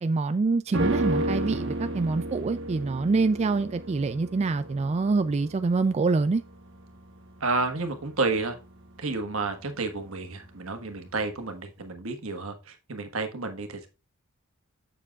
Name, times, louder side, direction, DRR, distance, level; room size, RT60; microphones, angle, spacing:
voice 1, 0.0-6.4, right 3 dB, 30° right, 0.3 m, -25 dB
sound 1, 0.7-10.1 10.4-10.5, right 1 dB, 60° right, 1.3 m, -33 dB
voice 2, 7.4-8.6 9.0-13.9, right 3 dB, 80° right, 1.4 m, -30 dB
7.4 x 6.7 x 2.4 m
head